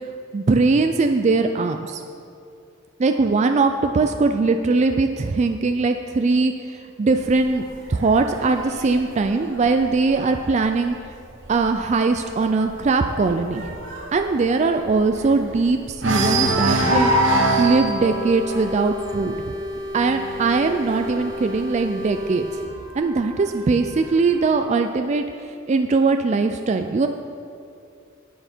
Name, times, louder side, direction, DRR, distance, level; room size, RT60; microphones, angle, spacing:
voice 1, 0.3-2.0 3.0-11.0 11.5-13.8 14.1-19.4 19.9-22.5 22.9-27.1, right 3 dB, 35° right, 6 dB, 0.3 m, -21 dB
sound 1, 7.2-10.8 11.2-11.6 11.8-11.9 12.3-15.6 16.0-22.5 23.4-24.4, right 1 dB, 65° right, 1.3 m, -25 dB
sound 2, 17.0-22.7, left 1 dB, 20° right, 1.3 m, -32 dB
10.0 x 9.2 x 4.5 m, 2.4 s
head